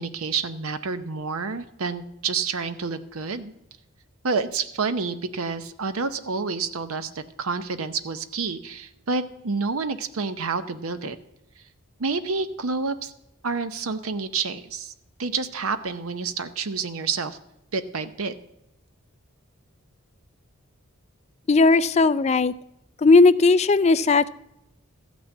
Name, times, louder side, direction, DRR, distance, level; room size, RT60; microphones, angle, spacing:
voice 1, 0.0-3.5 4.2-11.2 12.0-13.1 13.4-14.9 15.2-17.4 17.7-18.3, right 4 dB, 85° right, 11 dB, 0.7 m, -29 dB
voice 2, 21.5-22.5 23.0-24.3, left 3 dB, 30° left, 14 dB, 0.3 m, -17 dB
14.0 x 6.2 x 8.2 m, 0.82 s
head